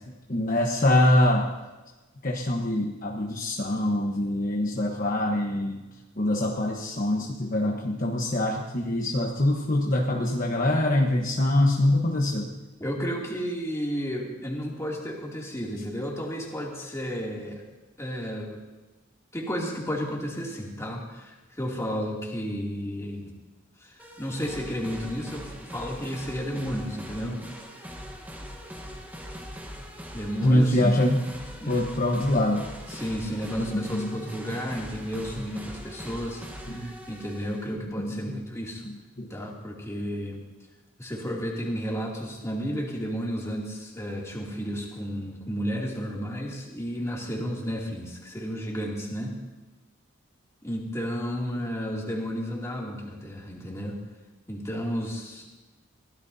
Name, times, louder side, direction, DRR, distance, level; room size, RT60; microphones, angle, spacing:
voice 1, 0.3-1.5 2.2-5.8 6.2-12.5 30.4-31.2 31.7-32.6 33.6-34.2 36.7-36.9 38.0-38.4 39.2-39.3, left 1 dB, 40° left, 0 dB, 1.3 m, -24 dB
voice 2, 12.8-17.6 18.0-18.6 19.3-23.3 23.8-27.4 30.1-30.8 31.6-31.8 32.9-38.9 39.3-40.4 41.0-49.4 50.6-54.0 54.5-55.6, equal, 15° left, -3 dB, 2.8 m, -32 dB
sound 1, 24.0-37.7, equal, 10° right, 1.3 m, -42 dB
23.0 x 16.5 x 2.8 m, 1.1 s
head